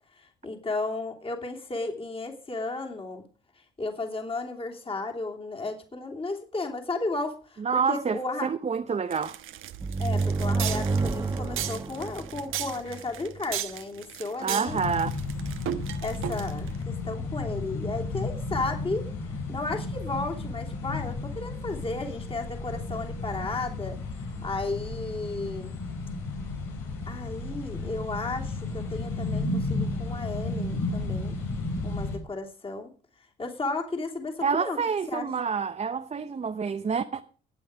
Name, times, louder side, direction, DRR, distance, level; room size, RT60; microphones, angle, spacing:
voice 1, 0.2-3.2 3.8-8.5 10.0-14.8 16.0-19.1 19.5-25.7 27.1-31.4 31.8-32.9 33.4-34.8 35.1-35.3, left 3 dB, 25° left, 2.9 m, -34 dB
voice 2, 7.6-9.4 14.4-15.1 34.4-37.2, right 6 dB, 30° right, 0.8 m, -28 dB
sound 1, 9.1-16.8, right 12 dB, 75° right, 1.1 m, -36 dB
sound 2, 9.8-13.4, right 3 dB, 15° right, 1.2 m, -29 dB
sound 3, 14.7-32.2, left 3 dB, 80° left, 4.4 m, -33 dB
15.0 x 8.6 x 4.9 m
supercardioid pair, 80°, 21 cm